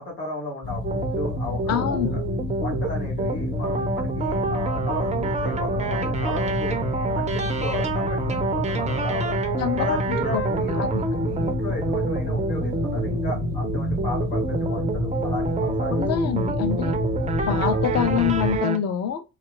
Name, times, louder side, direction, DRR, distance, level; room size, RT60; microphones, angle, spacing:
voice 1, 0.0-2.2 2.6-6.8 7.1-9.4 9.8-10.9 11.2-16.0 17.5-17.8, left 1 dB, 90° left, 0.9 m, -34 dB
sound 1, 0.6-18.6, left 3 dB, 55° left, 0.9 m, -29 dB
sound 2, 0.8-18.8, right 4 dB, 20° right, 0.4 m, -28 dB
voice 2, 1.7-2.2 9.6-9.8 10.3-10.4 10.8-11.0 15.9-17.0 17.4-19.2, left 8 dB, 35° left, 0.5 m, -25 dB
2.3 x 2.2 x 3.6 m
hypercardioid pair, 40°, 44 cm